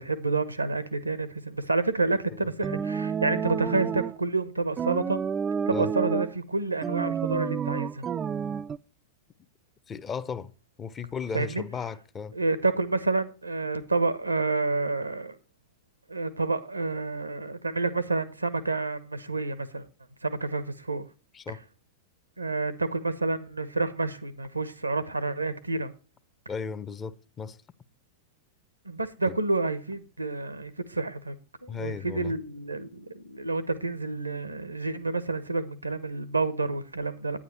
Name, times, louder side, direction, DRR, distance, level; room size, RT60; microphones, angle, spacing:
voice 1, 0.0-5.2 5.7-8.1 11.3-11.6 12.3-15.4 16.1-19.8 20.2-21.1 22.4-25.9 28.8-31.3 31.6-37.4, right 3 dB, 85° right, 1.0 m, -29 dB
sound 1, 2.6-4.2 4.8-6.4 6.8-8.8, right 7 dB, 20° right, 0.5 m, -30 dB
voice 2, 9.9-10.5 10.8-12.3 21.3-21.6 26.5-27.6 29.3-29.4 31.7-32.3, left 6 dB, 25° left, 0.8 m, -35 dB
10.0 x 9.6 x 4.3 m
figure-of-eight pair, 90°, 0 cm